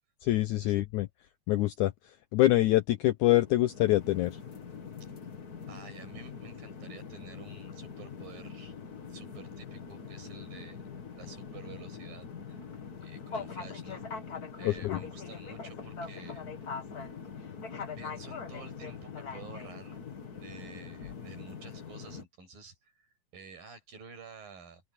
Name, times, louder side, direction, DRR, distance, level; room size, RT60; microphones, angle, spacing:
voice 1, 0.2-1.1 1.5-1.9 2.3-4.4 14.7-15.0, left 16 dB, 80° left, 1.8 m, -25 dB
sound 1, 3.4-22.2, left 5 dB, 40° left, 1.4 m, -43 dB
voice 2, 5.7-8.8 9.1-10.8 11.2-12.7 13.0-16.5 17.4-17.5 17.8-20.0 20.3-24.8, right 4 dB, 70° right, 9.0 m, -50 dB
open air
omnidirectional pair, 4.2 m